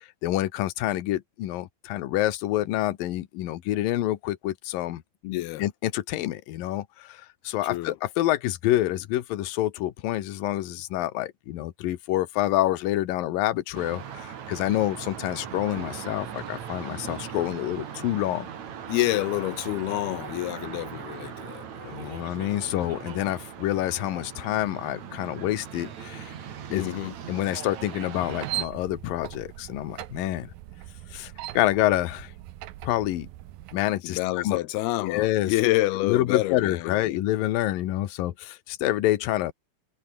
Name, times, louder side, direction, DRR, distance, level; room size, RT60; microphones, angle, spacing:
voice 1, 0.0-5.0 5.6-18.5 21.9-26.3 26.7-26.8 27.3-30.5 31.1-32.3 32.8-33.3 33.7-34.2 34.4-34.6 35.0-35.5 36.0-39.5, left 14 dB, 65° left, 2.3 m, -27 dB
voice 2, 5.2-5.6 7.6-8.0 18.9-22.2 26.7-27.1 34.0-37.2, left 18 dB, 90° left, 2.2 m, -28 dB
sound 1, 13.7-28.7, right 8 dB, 50° right, 2.7 m, -39 dB
sound 2, 28.2-33.8, right 14 dB, 75° right, 2.2 m, -39 dB
omnidirectional pair, 5.6 m